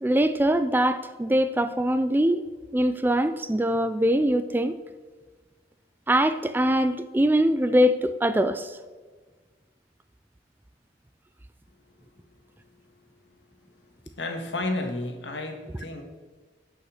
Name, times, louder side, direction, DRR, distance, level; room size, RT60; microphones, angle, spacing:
voice 1, 0.0-2.4 2.7-4.7 6.1-8.7, equal, 10° right, 12 dB, 0.4 m, -22 dB
voice 2, 14.2-16.0, left 2 dB, 85° left, 4 dB, 1.7 m, -31 dB
10.5 x 5.7 x 6.4 m, 1.4 s
head